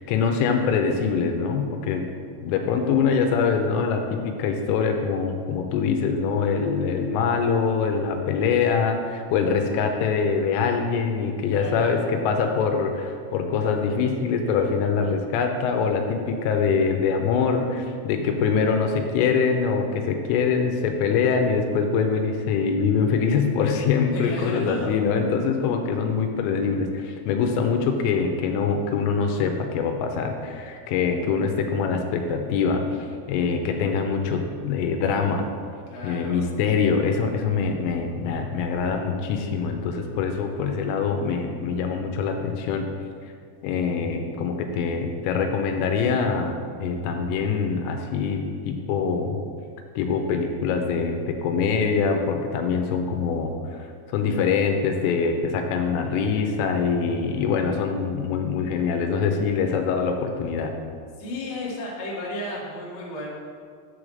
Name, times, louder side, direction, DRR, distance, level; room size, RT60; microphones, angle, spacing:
voice 1, 0.0-2.1 2.4-35.5 36.0-42.9 43.6-49.4 50.0-53.9 54.1-60.7, left 5 dB, 85° left, 4 dB, 3.1 m, -24 dB
voice 2, 11.5-12.0 24.1-24.9 35.9-36.4 61.2-63.3, left 1 dB, 65° left, -5 dB, 1.7 m, -33 dB
7.8 x 4.8 x 6.4 m, 2.1 s
omnidirectional pair, 5.9 m